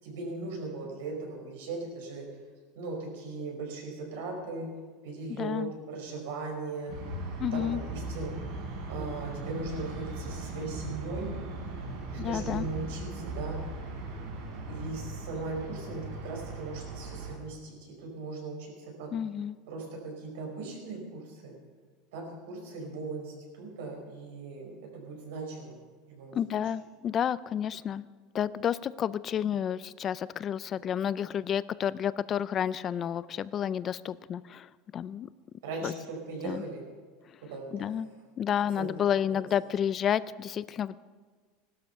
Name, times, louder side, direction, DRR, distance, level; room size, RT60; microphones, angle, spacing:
voice 1, 0.0-2.2 2.7-4.7 5.0-7.0 7.5-8.4 8.9-11.3 12.1-13.6 14.7-19.1 19.7-21.5 22.1-25.8 26.1-26.3 35.6-36.8 37.4-37.9 38.8-39.1, right 3 dB, 90° right, 1 dB, 5.0 m, -38 dB
voice 2, 5.4-5.7 7.4-7.8 12.2-12.7 19.1-19.6 26.3-28.1 28.3-35.3 35.8-35.9 36.4-36.6 37.7-38.1 38.4-41.0, left 9 dB, 25° left, 18 dB, 0.3 m, -30 dB
sound 1, 6.9-17.3, right 2 dB, 60° right, 4.5 m, -38 dB
17.5 x 12.5 x 5.8 m, 1.5 s
supercardioid pair, 160°, 0 cm